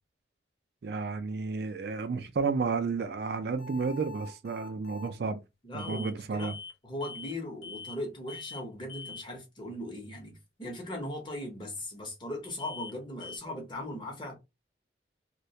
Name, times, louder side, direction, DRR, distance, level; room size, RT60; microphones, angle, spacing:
voice 1, 0.8-5.4 5.7-6.5, right 4 dB, 55° right, 0.3 m, -32 dB
sound 1, 3.6-5.2 5.8-6.1 6.4-6.8 7.0-7.4 7.6-8.0 8.3-8.6 8.9-9.3 12.6-12.9 13.2-13.4, left 4 dB, 85° left, 0.7 m, -44 dB
voice 2, 5.6-6.5 6.8-14.3, left 1 dB, 25° left, 0.8 m, -39 dB
2.3 x 2.1 x 2.7 m
head